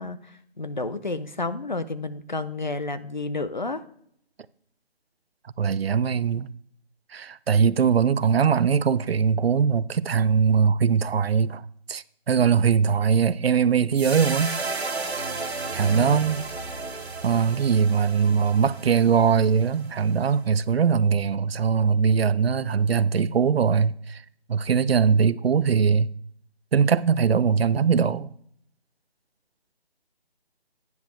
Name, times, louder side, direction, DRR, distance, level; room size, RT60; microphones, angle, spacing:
voice 1, 0.0-3.8 15.8-16.2, left 3 dB, 45° left, 0.5 m, -31 dB
voice 2, 5.6-6.5 7.1-11.6 11.9-14.6 15.7-16.4 17.2-24.2 24.5-26.1 26.7-28.3, right 6 dB, 70° right, 0.5 m, -21 dB
sound 1, 14.0-20.3, right 3 dB, 90° right, 1.6 m, -34 dB
9.4 x 5.0 x 5.2 m
figure-of-eight pair, 180°, 31 cm